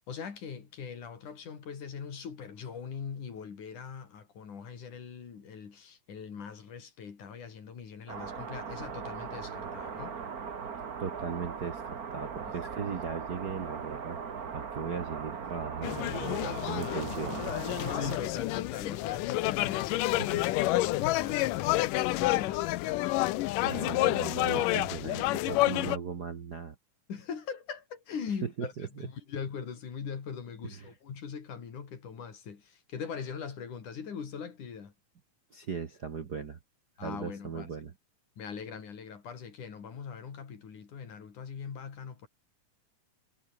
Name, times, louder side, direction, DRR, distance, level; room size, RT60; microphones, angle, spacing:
voice 1, 0.1-10.2 12.4-12.5 16.4-16.6 17.8-23.0 27.1-34.9 37.0-37.7 38.4-42.3, left 6 dB, 60° left, 4.7 m, -41 dB
sound 1, 8.1-18.2, right 6 dB, 45° right, 1.2 m, -39 dB
voice 2, 11.0-17.6 20.2-20.4 23.6-26.7 28.4-29.1 30.7-30.9 35.5-36.6 37.0-37.9, right 6 dB, 70° right, 0.9 m, -38 dB
sound 2, 15.8-26.0, left 18 dB, 80° left, 2.1 m, -29 dB
omnidirectional pair, 4.2 m